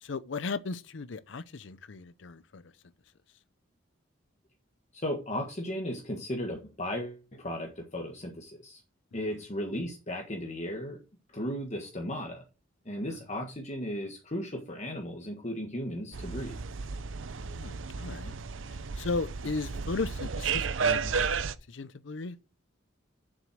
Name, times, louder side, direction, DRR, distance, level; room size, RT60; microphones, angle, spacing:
voice 1, 0.0-2.6 9.1-9.2 17.5-18.3 19.0-22.4, left 3 dB, 70° left, 0.6 m, -36 dB
voice 2, 4.9-8.8 9.1-11.0 11.3-12.4 12.8-16.6, equal, 35° left, 1.5 m, -35 dB
sound 1, 16.1-21.5, right 5 dB, 90° right, 0.7 m, -33 dB
7.5 x 6.3 x 6.3 m
head